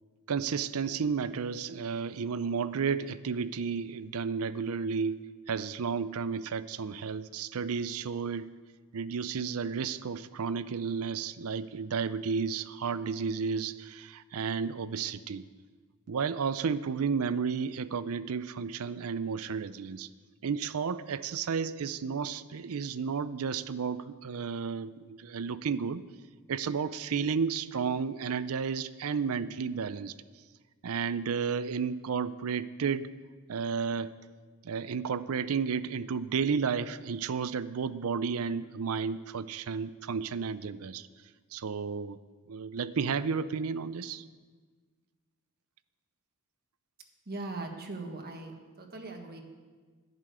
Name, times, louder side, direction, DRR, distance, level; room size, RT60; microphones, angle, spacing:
voice 1, 0.3-5.2 5.5-8.5 8.9-15.5 16.1-20.1 20.4-26.0 26.5-30.1 30.8-33.1 33.5-34.1 34.6-41.1 41.5-42.2 42.5-44.2, right 6 dB, 70° right, 15 dB, 0.5 m, -32 dB
voice 2, 47.3-49.4, right 2 dB, 45° right, 3 dB, 1.5 m, -40 dB
11.0 x 6.7 x 9.4 m, 1.5 s
head